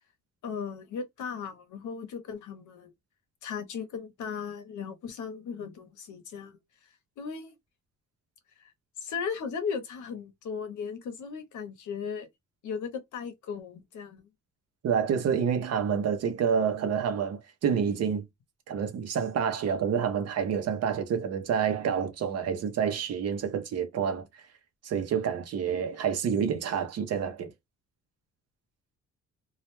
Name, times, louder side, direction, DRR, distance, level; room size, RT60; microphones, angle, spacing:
voice 1, 0.4-2.9 3.4-6.6 7.2-7.5 9.0-12.3 12.6-14.3, left 6 dB, 85° left, 0.8 m, -36 dB
voice 2, 14.8-18.2 18.7-24.4 24.8-27.5, right 7 dB, 55° right, 0.7 m, -28 dB
2.3 x 2.1 x 3.0 m
wide cardioid pair, 160°, 29 cm